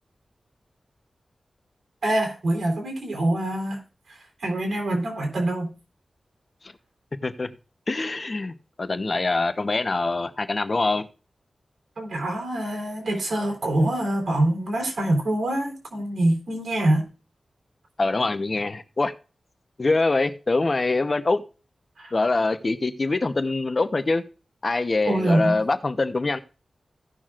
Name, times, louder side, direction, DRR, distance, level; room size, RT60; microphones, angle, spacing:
voice 1, 2.0-3.8 4.1-5.7 12.0-17.1 22.0-22.1 25.1-25.6, right 1 dB, 85° right, 3.6 m, -25 dB
voice 2, 7.9-11.1 18.0-19.1 19.8-21.4 22.1-24.2 24.6-26.4, left 3 dB, 40° left, 0.9 m, -24 dB
17.0 x 6.1 x 2.5 m
wide cardioid pair, 100°, 0 cm